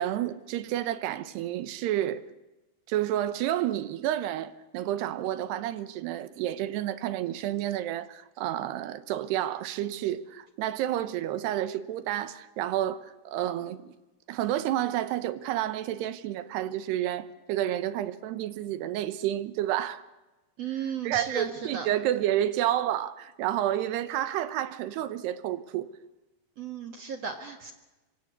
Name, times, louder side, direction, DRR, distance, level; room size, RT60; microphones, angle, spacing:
voice 1, 0.0-2.2 2.9-13.9 14.3-20.0 20.7-25.9, right 12 dB, 75° right, 3.1 m, -30 dB
voice 2, 20.6-21.9 26.6-27.7, right 6 dB, 50° right, 2.1 m, -35 dB
25.0 x 24.5 x 8.3 m
omnidirectional pair, 4.9 m